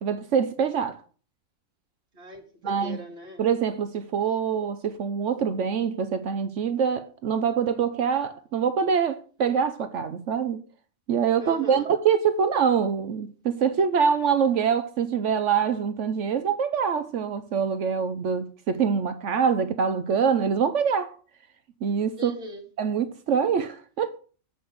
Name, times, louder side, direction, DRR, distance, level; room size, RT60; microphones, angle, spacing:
voice 1, 0.0-1.0 2.6-3.0 3.4-10.6 11.1-21.2 21.8-22.3 22.8-24.2, right 7 dB, 65° right, 1.0 m, -25 dB
voice 2, 2.1-3.4 11.4-11.9 22.2-22.6, equal, 45° right, 2.6 m, -39 dB
7.9 x 5.3 x 7.7 m
omnidirectional pair, 1.4 m